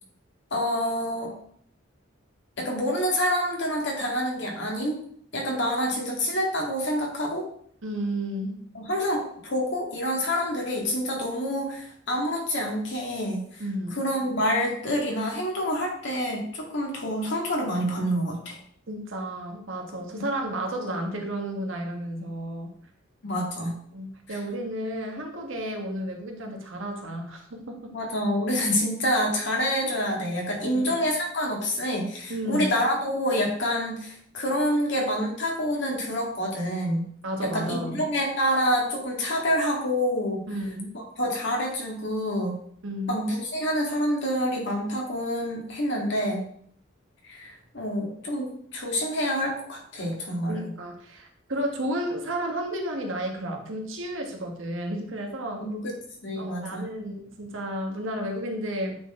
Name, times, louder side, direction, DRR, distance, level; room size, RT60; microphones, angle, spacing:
voice 1, 0.5-1.3 2.6-5.0 5.3-7.5 8.7-13.6 13.9-18.6 20.1-20.2 23.2-23.7 24.3-24.4 27.9-37.0 37.4-40.4 40.9-42.6 43.1-46.4 47.2-50.7 55.6-55.9 56.2-56.8, equal, 65° left, -1 dB, 2.0 m, -27 dB
voice 2, 7.8-8.5 13.6-14.0 18.9-22.7 23.9-27.9 30.6-31.0 32.3-32.7 37.2-38.0 40.5-40.9 42.8-43.2 50.5-55.6 56.3-59.0, right 1 dB, 80° right, 2 dB, 1.4 m, -32 dB
8.4 x 4.1 x 3.6 m, 0.62 s
head